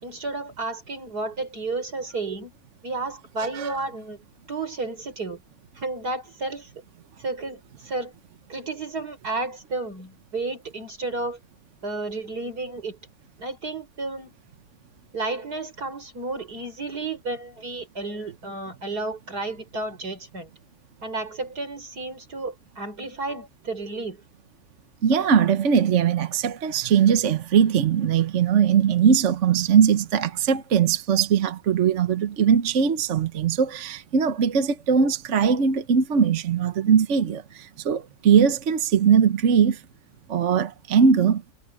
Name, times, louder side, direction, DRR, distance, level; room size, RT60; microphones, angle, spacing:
voice 1, 0.0-2.5 2.8-4.2 4.5-5.4 5.8-6.7 7.2-8.1 8.5-11.4 11.8-13.0 13.4-14.3 15.1-20.5 21.0-24.2, right 3 dB, 75° right, 5.7 m, -32 dB
voice 2, 25.0-39.8 40.3-41.4, right 7 dB, 55° right, 1.2 m, -20 dB
omnidirectional pair, 1.7 m